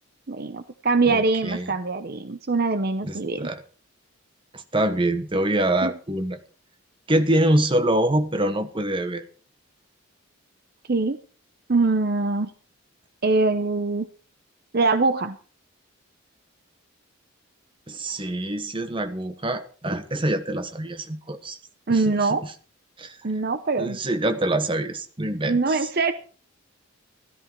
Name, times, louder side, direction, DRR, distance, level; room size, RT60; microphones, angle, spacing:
voice 1, 0.3-3.5 5.8-5.9 10.9-11.2 11.7-12.5 13.2-14.1 14.7-15.4 21.9-22.4 23.2-24.0 25.4-26.1, right 3 dB, 45° right, 0.7 m, -23 dB
voice 2, 1.0-1.7 3.0-3.6 4.5-6.4 7.1-9.2 17.9-21.6 21.9-22.5 23.0-23.2 23.8-25.9, right 1 dB, 25° right, 1.1 m, -25 dB
13.5 x 13.0 x 4.4 m
head